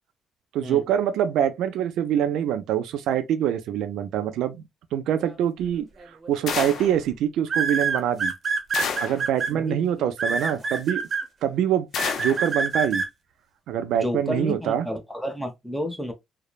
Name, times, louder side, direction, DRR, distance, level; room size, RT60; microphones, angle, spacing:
voice 1, 0.5-4.6 4.9-5.9 6.3-8.3 9.0-11.0 11.4-11.9 12.2-13.0 13.7-14.9, right 10 dB, 85° right, 0.3 m, -24 dB
sound 1, 6.0-6.3 7.5-9.5 10.2-11.2 12.0-13.1, right 4 dB, 40° right, 0.8 m, -25 dB
sound 2, 6.5-7.0 8.7-9.3 11.9-12.5, left 6 dB, 70° left, 0.5 m, -29 dB
voice 2, 9.5-10.1 10.6-10.7 14.0-16.1, equal, 5° left, 0.8 m, -31 dB
3.0 x 2.0 x 2.3 m
cardioid pair, 90°, 0 cm